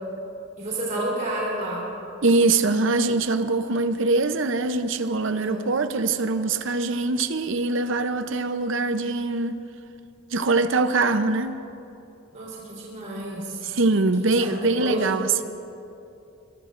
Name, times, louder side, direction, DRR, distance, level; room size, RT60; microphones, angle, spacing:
voice 1, 0.6-1.8 5.3-5.6 12.3-13.6 14.2-15.1, right 1 dB, 40° right, -6 dB, 3.5 m, -30 dB
voice 2, 2.2-9.6 10.3-11.6 13.6-15.4, right 3 dB, 65° right, 10 dB, 0.7 m, -23 dB
24.5 x 21.0 x 2.6 m, 2.7 s
head